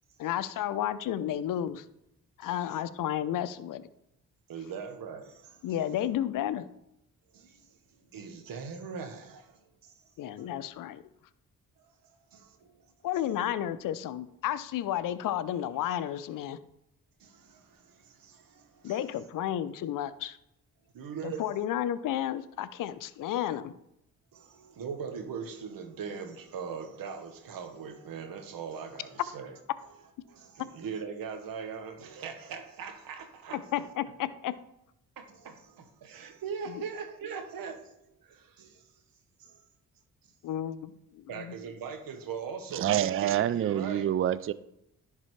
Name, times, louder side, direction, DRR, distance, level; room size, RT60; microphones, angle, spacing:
voice 1, 0.2-1.8 2.4-3.9 5.6-6.7 10.2-11.0 13.0-16.6 18.8-20.4 21.2-23.7 33.5-34.5 36.7-36.8 40.4-41.5, left 11 dB, 60° left, 0.5 m, -32 dB
voice 2, 4.5-5.7 7.3-7.7 8.1-9.9 10.4-10.5 12.3-12.7 17.2-19.0 20.9-21.4 24.3-29.5 30.2-33.7 35.2-37.9 38.2-38.8 39.4-39.6 41.3-44.1, right 6 dB, 70° right, 1.1 m, -40 dB
voice 3, 42.7-44.5, right 11 dB, 40° right, 0.4 m, -27 dB
10.5 x 3.8 x 3.2 m
supercardioid pair, 50°, 36 cm